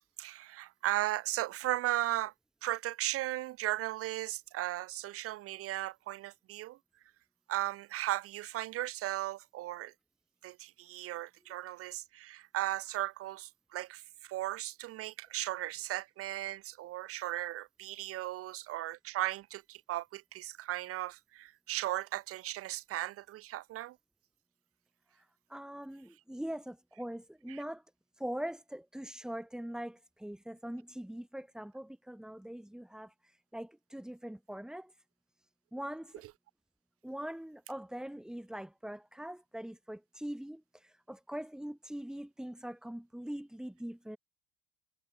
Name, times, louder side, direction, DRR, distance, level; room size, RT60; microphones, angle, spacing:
voice 1, 0.2-2.3 2.6-6.8 7.5-9.9 10.4-24.0 27.5-27.6 36.2-36.3, right 15 dB, 50° right, 2.3 m, -36 dB
voice 2, 25.5-27.8 28.2-33.1 33.5-34.9 35.7-36.1 37.0-40.6 41.1-44.2, right 1 dB, ahead, 4.0 m, -42 dB
figure-of-eight pair, 70°, 30 cm